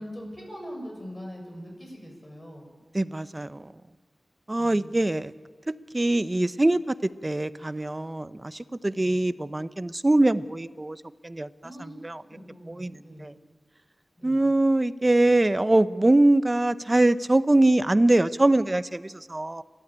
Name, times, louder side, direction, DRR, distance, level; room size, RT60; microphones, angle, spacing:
voice 1, 0.0-2.7 4.6-5.0 8.9-9.3 11.6-12.0 12.3-13.3 14.2-14.5, equal, 20° left, 1 dB, 7.3 m, -42 dB
voice 2, 2.9-3.7 4.5-5.3 5.7-11.5 12.0-12.2 12.7-13.3 14.2-19.6, right 2 dB, 25° right, 14 dB, 0.8 m, -23 dB
30.0 x 13.0 x 8.7 m, 1.5 s
wide cardioid pair, 65°, 0 cm